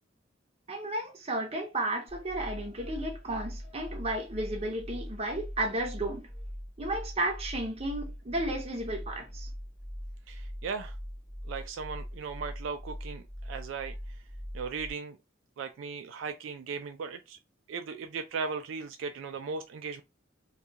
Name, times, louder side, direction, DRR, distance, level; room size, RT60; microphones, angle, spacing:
voice 1, 0.7-6.3 6.8-9.5, right 1 dB, 30° right, 0.7 m, -33 dB
sound 1, 2.1-14.9, equal, 10° left, 1.1 m, -41 dB
voice 2, 10.3-11.0 11.4-14.2 14.5-15.2 15.6-17.4 17.7-20.0, right 5 dB, 75° right, 0.3 m, -37 dB
2.3 x 2.2 x 2.8 m
head